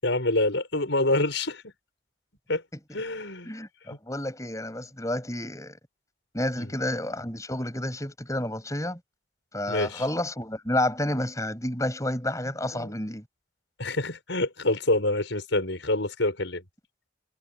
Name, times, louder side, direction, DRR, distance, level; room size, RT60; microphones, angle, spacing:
voice 1, 0.0-1.6 2.5-2.6 2.9-3.5 6.6-6.7 9.7-10.0 12.7-12.9 13.8-16.6, left 2 dB, 85° left, 5.7 m, -26 dB
voice 2, 3.4-5.8 6.3-9.0 9.5-13.2, left 1 dB, 15° left, 7.8 m, -30 dB
head